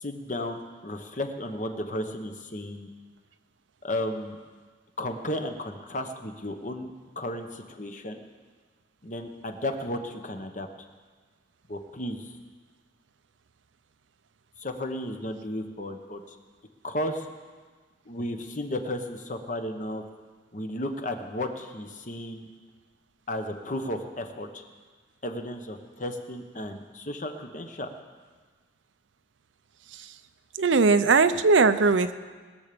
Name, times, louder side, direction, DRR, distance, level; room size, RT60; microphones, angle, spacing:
voice 1, 0.0-2.9 3.8-4.4 5.0-8.2 9.0-10.7 11.7-12.3 14.6-16.4 16.8-17.3 18.1-20.0 20.5-22.5 23.3-24.6 25.2-27.9, left 1 dB, 40° left, 6 dB, 1.1 m, -34 dB
voice 2, 30.6-32.1, right 4 dB, 85° right, 11 dB, 0.6 m, -20 dB
20.5 x 7.1 x 6.9 m, 1.5 s
head